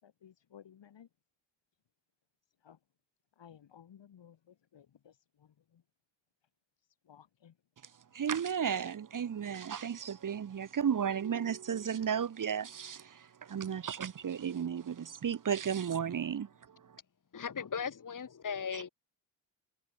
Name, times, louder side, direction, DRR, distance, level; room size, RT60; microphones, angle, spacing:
voice 1, 0.0-1.1 2.6-2.8 3.4-5.1 5.4-5.8 7.1-7.5, left 9 dB, 70° left, 7.4 m, -57 dB
voice 2, 8.1-13.0 13.5-16.5, right 8 dB, 45° right, 1.0 m, -33 dB
voice 3, 17.3-18.9, left 6 dB, 45° left, 2.1 m, -37 dB
cardioid pair, 70°, 45 cm